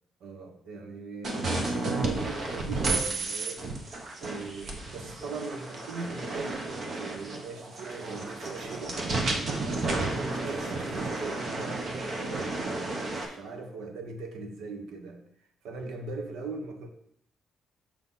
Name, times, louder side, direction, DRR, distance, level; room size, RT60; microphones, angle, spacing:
voice 1, 0.2-3.8 4.2-9.0 9.4-12.7 13.1-15.2 15.6-16.9, right 3 dB, 85° right, 5 dB, 1.1 m, -40 dB
sound 1, 1.2-13.3, right 2 dB, 35° right, 1.0 m, -32 dB
Human voice, 7.9-8.9 10.5-11.1, right 4 dB, 60° right, 1.0 m, -49 dB
6.5 x 4.2 x 5.6 m, 0.70 s
cardioid pair, 175°, 0 cm